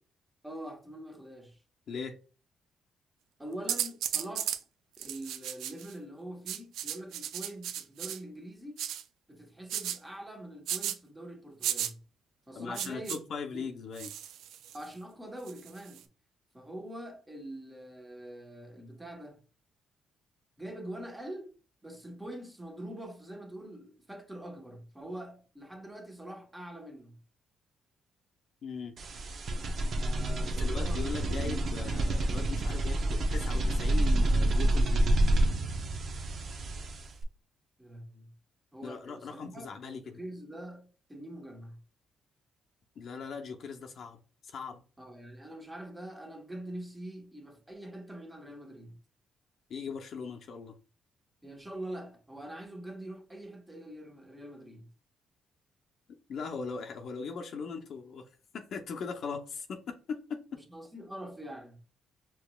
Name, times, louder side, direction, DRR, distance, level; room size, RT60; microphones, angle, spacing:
voice 1, 0.4-1.6 3.4-4.6 5.0-8.9 9.3-12.0 12.5-13.2 13.5-13.7 14.7-16.1 16.5-19.4 20.6-21.5 21.8-27.2 30.0-31.6 37.8-38.3 38.7-39.7 40.1-41.8 45.0-48.9 51.4-54.9 60.7-61.8, right 1 dB, 10° right, 1.2 m, -44 dB
sound 1, 3.7-4.6 5.0-5.9 6.5-8.2 8.8-9.0 9.7-10.0 10.7-11.0 11.6-11.9 12.7-13.2 14.0-14.9 15.5-16.0, right 10 dB, 85° right, 0.4 m, -34 dB
voice 2, 12.5-14.1 28.6-29.0 30.6-35.2 38.8-40.2 43.0-44.8 49.7-50.8 56.3-58.3 58.5-60.6, left 5 dB, 65° left, 0.7 m, -39 dB
sound 2, 29.0-37.2, right 1 dB, 55° right, 0.8 m, -28 dB
4.7 x 3.1 x 2.3 m
cardioid pair, 90°, 0 cm